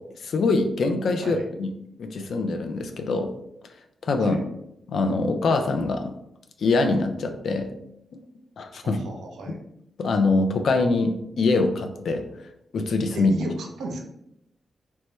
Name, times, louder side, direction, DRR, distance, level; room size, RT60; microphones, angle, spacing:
voice 1, 0.2-1.7 2.0-3.3 4.0-4.4 4.9-6.1 6.6-7.7 8.6-9.0 9.5-9.6 10.0-12.2 12.7-13.3, left 3 dB, 75° left, 6 dB, 0.4 m, -23 dB
voice 2, 8.8-9.6 13.1-14.0, right 2 dB, 85° right, 2 dB, 0.5 m, -34 dB
3.0 x 2.1 x 3.1 m, 0.81 s
supercardioid pair, 45°, 0 cm